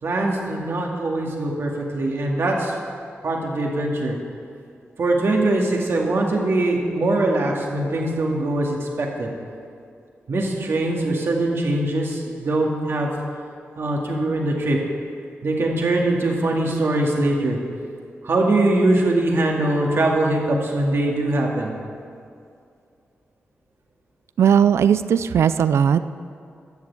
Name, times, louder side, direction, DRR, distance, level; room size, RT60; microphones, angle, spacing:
voice 1, 0.0-2.7 3.2-4.2 5.0-9.3 10.3-13.1 13.8-14.8 15.4-17.6 18.2-21.7, right 2 dB, 65° right, -1 dB, 2.1 m, -22 dB
voice 2, 24.4-26.0, right 8 dB, 90° right, 13 dB, 0.4 m, -17 dB
12.0 x 7.0 x 8.5 m, 2.4 s
cardioid pair, 70°, 4 cm